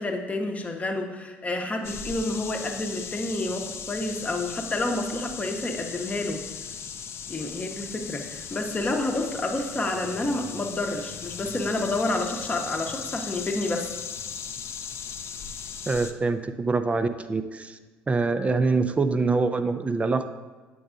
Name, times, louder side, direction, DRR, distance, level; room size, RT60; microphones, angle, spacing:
voice 1, 0.0-6.4 7.3-13.9, left 2 dB, 25° left, 3 dB, 0.8 m, -29 dB
sound 1, 1.8-16.1, left 7 dB, 45° left, 0.4 m, -37 dB
voice 2, 15.9-17.8 18.1-20.3, right 3 dB, 20° right, 10 dB, 0.4 m, -25 dB
7.7 x 5.3 x 2.5 m, 1.3 s
hypercardioid pair, 65°, 6 cm